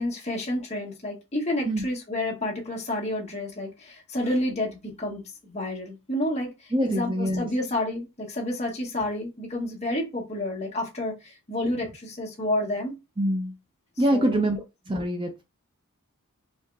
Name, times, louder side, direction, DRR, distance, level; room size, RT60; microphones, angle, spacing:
voice 1, 0.0-6.5 6.8-13.0 14.1-14.4, left 1 dB, 30° left, 1.3 m, -30 dB
voice 2, 6.7-7.5 13.2-13.6 14.0-15.4, right 1 dB, 20° right, 0.5 m, -25 dB
4.6 x 2.8 x 2.3 m
head